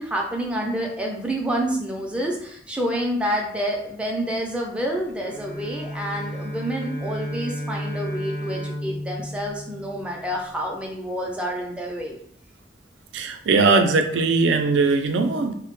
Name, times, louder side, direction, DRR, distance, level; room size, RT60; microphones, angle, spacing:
voice 1, 0.0-12.2, equal, 5° right, -1 dB, 0.3 m, -28 dB
Bowed string instrument, 5.2-10.4, equal, 70° left, 0.9 m, -33 dB
voice 2, 13.1-15.5, right 3 dB, 80° right, 6 dB, 0.3 m, -20 dB
2.1 x 2.0 x 3.0 m, 0.67 s
head